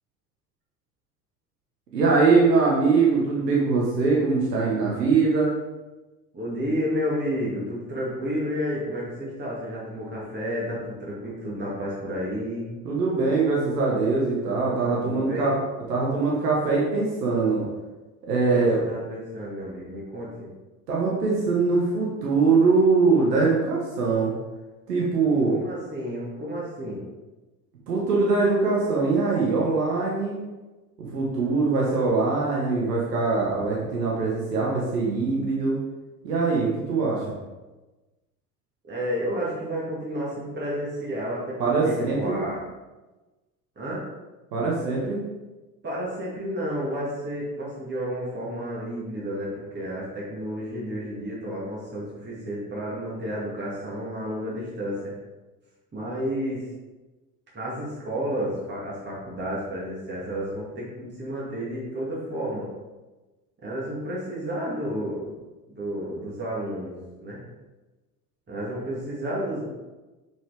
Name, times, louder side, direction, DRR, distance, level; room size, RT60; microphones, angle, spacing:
voice 1, 1.9-5.5 12.8-15.5 15.9-17.6 18.3-18.8 20.9-24.3 24.9-25.6 27.9-30.4 31.0-35.8 36.2-37.2 41.6-42.4 44.5-45.2, right 4 dB, 80° right, -4 dB, 1.4 m, -22 dB
voice 2, 6.3-12.7 15.0-15.6 18.5-20.5 25.5-27.0 38.9-42.6 43.8-44.0 45.8-55.1 55.9-56.7 57.5-62.7 63.6-65.3 65.7-67.4 68.5-69.6, equal, 20° right, -6 dB, 2.0 m, -31 dB
6.1 x 5.6 x 3.5 m, 1.2 s
hypercardioid pair, 75°, 47 cm